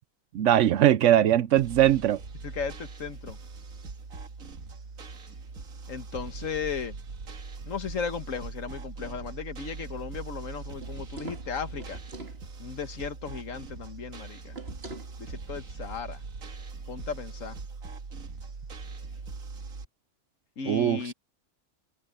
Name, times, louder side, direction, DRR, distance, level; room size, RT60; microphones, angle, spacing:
voice 1, 0.3-2.2 20.7-21.1, right 11 dB, 70° right, 0.9 m, -21 dB
sound 1, 1.6-19.9, right 4 dB, 85° right, 2.1 m, -41 dB
voice 2, 2.4-3.4 5.9-7.0 7.7-12.0 12.6-14.6 15.2-16.2 16.9-17.6 20.6-21.1, left 6 dB, 70° left, 1.7 m, -36 dB
sound 2, 10.7-12.4 14.5-15.1, right 2 dB, 50° right, 2.3 m, -42 dB
open air
omnidirectional pair, 1.4 m